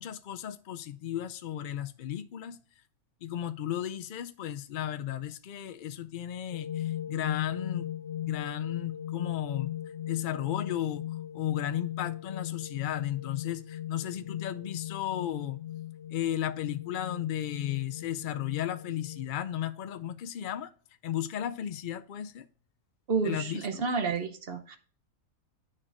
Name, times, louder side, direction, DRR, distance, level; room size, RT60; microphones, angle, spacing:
voice 1, 0.0-2.6 3.2-7.9 8.2-9.7 10.1-11.0 11.3-15.6 16.1-20.7 21.0-22.5 23.2-23.8, left 11 dB, 90° left, 0.4 m, -34 dB
sound 1, 6.5-19.3, left 12 dB, 60° left, 0.8 m, -38 dB
voice 2, 23.1-24.8, right 4 dB, 50° right, 0.9 m, -30 dB
8.8 x 6.5 x 2.5 m
omnidirectional pair, 1.4 m